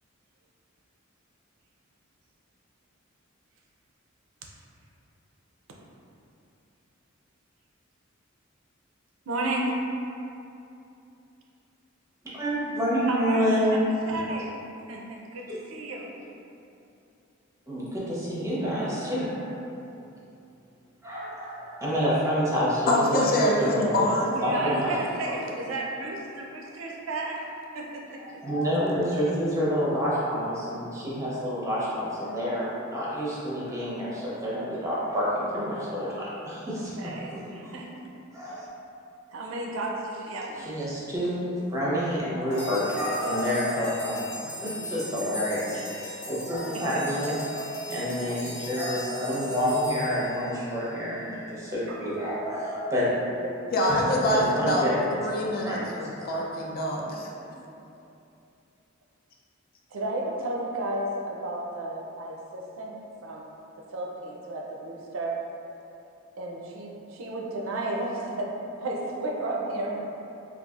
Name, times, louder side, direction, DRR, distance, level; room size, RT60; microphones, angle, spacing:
voice 1, 9.3-9.8 13.1-13.8 14.1-14.5 14.9-16.1 24.4-27.4 27.7-28.2 37.0-38.1 39.3-40.9 46.7-47.0 48.6-48.7 51.9-52.0 53.4-53.5 59.9-63.0 63.2-63.5 63.9-65.4 66.4-70.0, right 2 dB, 75° right, -1 dB, 0.4 m, -33 dB
voice 2, 12.3-13.9 15.5-15.6 17.7-19.6 21.0-24.0 24.4-25.0 28.2-36.9 37.3-37.7 38.3-38.7 40.6-53.3 53.8-54.0 54.2-55.0 55.5-56.5, equal, 15° right, -8 dB, 0.7 m, -28 dB
voice 3, 22.9-24.4 25.3-25.4 53.7-54.8 55.2-57.3, left 1 dB, 45° left, -2 dB, 0.4 m, -25 dB
sound 1, 42.5-51.0, equal, 75° left, 1.1 m, -40 dB
3.9 x 2.4 x 2.4 m, 2.7 s
head